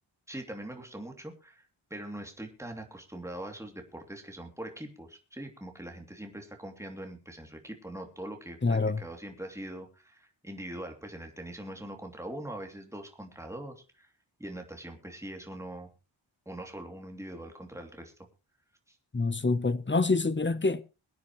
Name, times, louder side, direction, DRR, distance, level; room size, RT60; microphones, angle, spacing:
voice 1, 0.3-1.6 1.9-14.1 14.4-15.9 16.5-18.1 18.9-19.0, right 1 dB, 5° right, 2.8 m, -42 dB
voice 2, 8.6-9.0 19.1-20.8, left 3 dB, 25° left, 0.9 m, -26 dB
23.0 x 9.5 x 3.1 m
wide cardioid pair, 95°, 48 cm